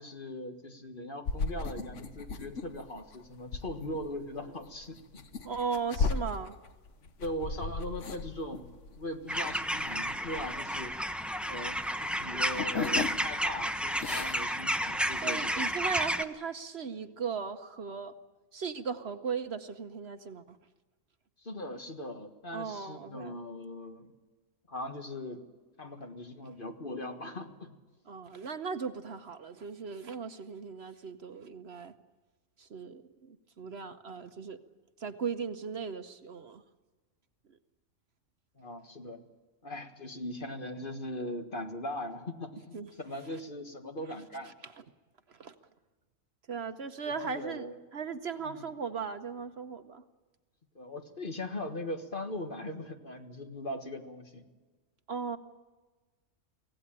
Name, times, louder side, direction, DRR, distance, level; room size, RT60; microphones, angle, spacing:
voice 1, 0.0-5.2 7.0-8.7 9.0-10.9 11.5-15.7 21.4-24.1 24.7-25.4 25.8-27.8 38.6-39.2 39.6-44.5 47.0-47.8 48.4-48.6 50.8-54.4, left 1 dB, 40° left, 5 dB, 1.8 m, -40 dB
sound 1, 1.3-11.6 11.9-13.5 13.8-14.5, left 4 dB, 65° left, 1.4 m, -36 dB
voice 2, 5.4-6.6 15.2-18.1 18.5-20.6 22.5-23.4 28.1-31.9 32.6-34.6 35.0-36.6 42.7-42.9 44.5-44.6 45.3-45.5 46.5-47.7 47.9-50.0 55.1-55.4, right 6 dB, 55° right, 9 dB, 1.1 m, -37 dB
sound 2, 9.3-16.2, equal, ahead, 0.7 m, -32 dB
24.5 x 17.0 x 8.9 m, 1.3 s
omnidirectional pair, 1.4 m